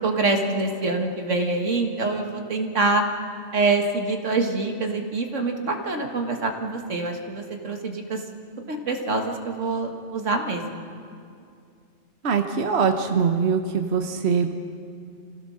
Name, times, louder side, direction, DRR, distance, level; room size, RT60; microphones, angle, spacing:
voice 1, 0.0-3.0 3.5-8.2 8.7-10.9, right 3 dB, 90° right, 4 dB, 2.0 m, -25 dB
voice 2, 12.2-14.5, right 6 dB, 60° right, 5 dB, 1.3 m, -22 dB
26.5 x 16.5 x 6.4 m, 2.4 s
omnidirectional pair, 1.2 m